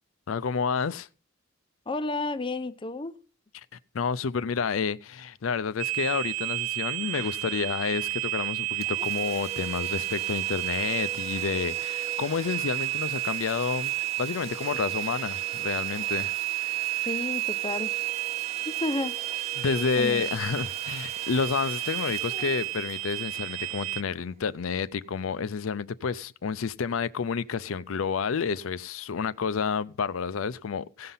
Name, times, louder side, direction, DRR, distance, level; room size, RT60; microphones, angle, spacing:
voice 1, 0.3-1.1 3.7-17.1 19.6-31.1, left 5 dB, 80° left, 0.5 m, -30 dB
voice 2, 1.9-3.2 17.1-17.9 18.6-19.1 20.0-20.2, left 2 dB, 25° left, 0.5 m, -31 dB
sound 1, 5.8-24.0, right 17 dB, 85° right, 0.4 m, -31 dB
Domestic sounds home sounds, 8.8-24.3, right 5 dB, 30° right, 1.1 m, -43 dB
16.5 x 5.8 x 5.5 m
head